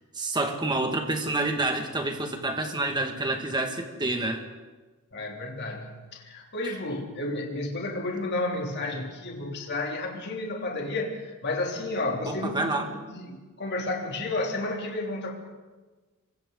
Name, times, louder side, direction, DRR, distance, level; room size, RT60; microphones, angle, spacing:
voice 1, 0.1-4.4 12.3-12.9, right 2 dB, 20° right, 4 dB, 2.0 m, -28 dB
voice 2, 5.1-15.3, left 2 dB, 50° left, 0 dB, 3.2 m, -32 dB
27.5 x 23.5 x 4.0 m, 1.3 s
head